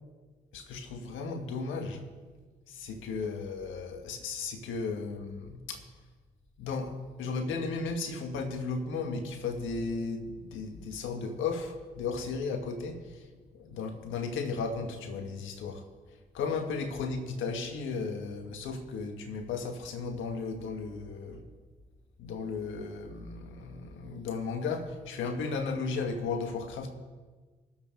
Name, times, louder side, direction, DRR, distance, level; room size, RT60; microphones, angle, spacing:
voice 1, 0.5-2.0 2.7-5.8 6.6-13.3 13.5-15.8 16.3-21.4 22.2-26.9, left 4 dB, 85° left, 5 dB, 1.5 m, -35 dB
21.5 x 7.9 x 3.8 m, 1.4 s
supercardioid pair, 45°, 20 cm